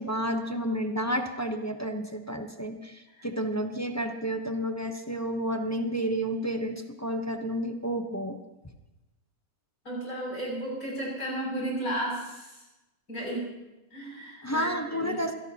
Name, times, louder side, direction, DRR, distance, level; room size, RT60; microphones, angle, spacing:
voice 1, 0.0-8.4 14.4-15.3, equal, 15° left, 4 dB, 0.7 m, -31 dB
voice 2, 9.8-12.7 13.1-13.5 13.9-15.2, right 1 dB, 70° left, -3 dB, 7.8 m, -34 dB
25.0 x 17.5 x 3.0 m, 1.0 s
omnidirectional pair, 1.6 m